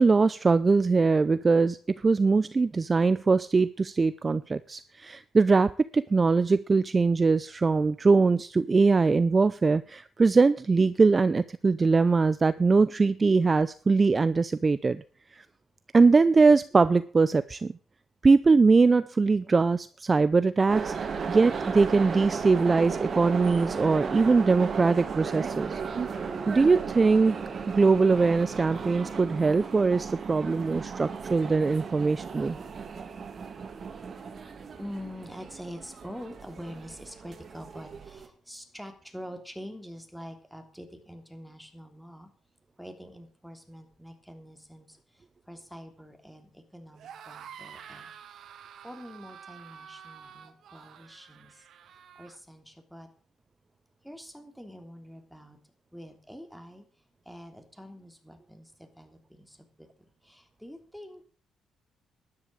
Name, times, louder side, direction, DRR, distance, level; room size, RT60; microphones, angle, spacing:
voice 1, 0.0-15.0 15.4-15.5 15.9-17.7 18.2-25.8 26.5-27.4 27.7-32.6, right 4 dB, 30° right, 15 dB, 0.5 m, -22 dB
sound 1, 20.7-38.3, right 5 dB, 45° right, 2.4 m, -35 dB
voice 2, 34.8-42.3 42.8-45.0 45.5-48.1 48.8-51.5 52.2-53.1 54.0-55.6 55.9-56.8 57.3-59.9 60.3-61.2, equal, ahead, 6 dB, 3.2 m, -45 dB
sound 2, 46.9-52.4, right 8 dB, 70° right, 1.5 m, -48 dB
12.5 x 10.5 x 6.3 m, 0.42 s
cardioid pair, 90°, 0 cm